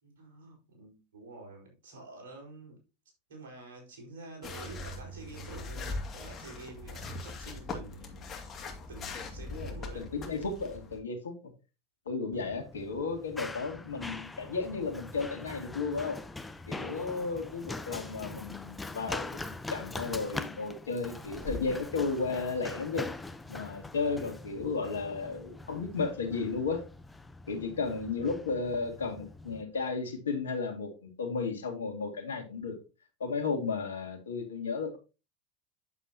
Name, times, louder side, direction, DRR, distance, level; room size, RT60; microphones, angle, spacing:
voice 1, 0.0-2.8 3.3-8.4 8.9-10.1, right 2 dB, 70° right, 4.7 m, -48 dB
sound 1, 4.4-11.0, left 3 dB, 30° left, 2.3 m, -41 dB
voice 2, 9.5-11.4 12.1-16.2 16.7-19.4 19.7-23.1 23.5-26.8 27.5-32.8 33.2-35.0, left 4 dB, 80° left, 2.0 m, -34 dB
Run, 12.3-29.6, left 2 dB, 10° left, 0.8 m, -43 dB
9.0 x 7.6 x 2.8 m
hypercardioid pair, 85°, 0 cm